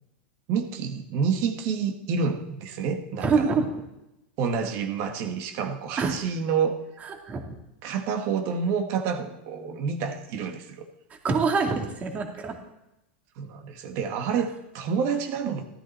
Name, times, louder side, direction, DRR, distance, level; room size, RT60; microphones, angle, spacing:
voice 1, 0.5-3.5 4.4-6.8 7.8-10.9 13.4-15.6, right 6 dB, 50° right, 5 dB, 1.7 m, -28 dB
voice 2, 3.2-3.7 6.0-6.1 7.0-7.4 11.2-12.6, right 4 dB, 25° right, 3 dB, 2.4 m, -25 dB
14.5 x 13.0 x 4.3 m, 0.92 s
supercardioid pair, 125°, 6 cm